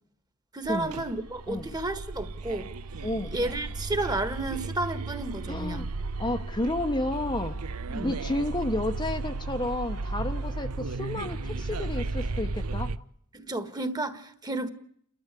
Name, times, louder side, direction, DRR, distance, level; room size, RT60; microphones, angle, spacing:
voice 1, 0.5-2.7 3.3-5.9 7.9-8.2 13.3-14.7, right 2 dB, 20° right, 1.6 m, -32 dB
sound 1, 0.6-13.0, right 3 dB, 80° right, 0.9 m, -34 dB
voice 2, 3.0-3.3 5.5-5.9 6.2-7.5 8.0-12.9, left 1 dB, 20° left, 1.0 m, -31 dB
30.0 x 13.0 x 8.3 m
head